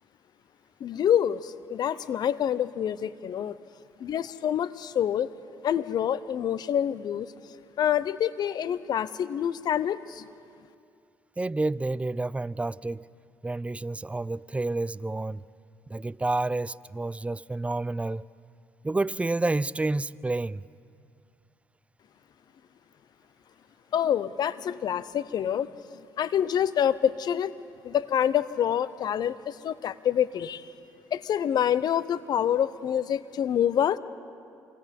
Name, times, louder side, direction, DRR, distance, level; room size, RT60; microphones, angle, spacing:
voice 1, 0.8-3.5 4.0-5.3 5.6-7.3 7.8-10.2 23.9-25.7 26.2-27.5 27.8-30.6 31.1-34.0, left 9 dB, 60° left, 0.8 m, -26 dB
voice 2, 11.4-13.1 13.4-15.4 15.9-18.3 18.8-20.6, right 2 dB, 15° right, 0.5 m, -29 dB
27.5 x 24.5 x 5.4 m
supercardioid pair, 60°, 8 cm